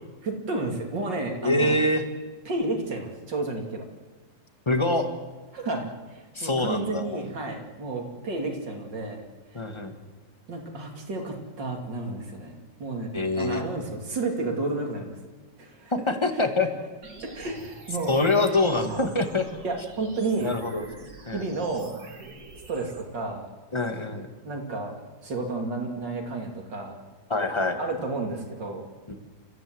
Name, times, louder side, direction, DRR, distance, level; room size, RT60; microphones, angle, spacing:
voice 1, 0.2-1.7 2.5-3.8 5.5-9.2 9.5-9.6 10.5-12.5 12.8-15.1 15.6-15.9 17.3-18.2 18.9-19.0 19.6-20.6 21.0-21.9 22.7-23.5 24.4-24.9 25.2-27.0 27.8-28.9, right 3 dB, 70° right, 2 dB, 3.5 m, -31 dB
voice 2, 1.4-2.0 4.6-5.1 6.3-7.2 9.5-9.9 13.1-13.6 15.9-16.7 18.1-19.5 20.4-20.9 21.3-21.5 23.7-24.3 27.3-27.8 29.1-29.2, left 2 dB, 15° left, 6 dB, 1.7 m, -25 dB
sound 1, 17.0-23.0, right 2 dB, 55° right, 2.7 m, -46 dB
29.5 x 14.5 x 7.9 m, 1.3 s
omnidirectional pair, 2.0 m